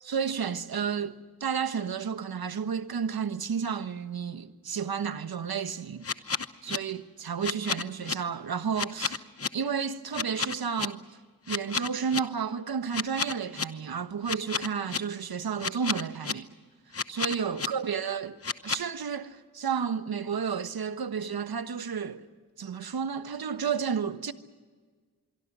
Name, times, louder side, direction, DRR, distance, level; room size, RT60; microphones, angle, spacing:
voice 1, 0.0-6.1 6.6-9.3 9.5-11.2 11.5-16.5 17.1-18.4 18.6-22.3 22.6-24.3, right 6 dB, 65° right, 1.3 m, -32 dB
sound 1, 6.0-6.8 7.4-8.1 8.8-9.5 10.1-10.9 11.5-12.2 12.9-13.6 14.3-15.0 15.6-16.3 16.9-17.7 18.4-18.8, left 5 dB, 35° left, 1.0 m, -30 dB
26.0 x 23.5 x 6.2 m
cardioid pair, 60°, 39 cm